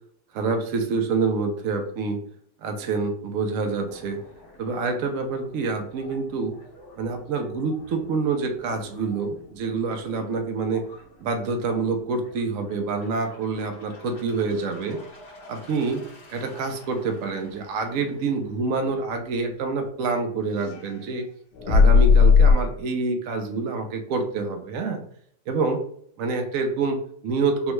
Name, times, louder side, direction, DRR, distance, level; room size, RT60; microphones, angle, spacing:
voice 1, 0.3-2.2 2.6-4.2 4.6-6.6 7.0-10.9 11.2-15.0 15.5-16.0 16.3-21.3 21.7-25.0 25.5-25.8 26.2-27.7, right 4 dB, 75° right, 5 dB, 0.7 m, -27 dB
sound 1, 3.9-19.9 20.5-22.5, left 5 dB, 60° left, 1.4 m, -27 dB
3.5 x 2.1 x 3.0 m, 0.62 s
omnidirectional pair, 2.0 m